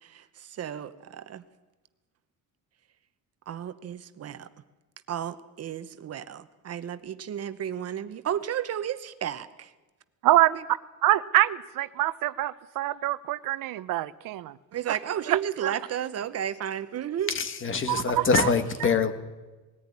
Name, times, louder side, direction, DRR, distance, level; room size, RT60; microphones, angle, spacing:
voice 1, 0.0-1.4 3.5-4.5 5.1-9.7 10.5-10.6 14.7-17.3, right 10 dB, 45° right, 12 dB, 0.9 m, -33 dB
voice 2, 10.2-10.6 11.0-14.6 14.9-15.0 15.3-15.7 17.9-18.5 18.8-18.9, right 15 dB, 70° right, 16 dB, 0.7 m, -25 dB
voice 3, 17.3-19.1, left 5 dB, 35° left, 9 dB, 1.7 m, -24 dB
20.0 x 14.5 x 9.7 m, 1.2 s
cardioid pair, 140°, 34 cm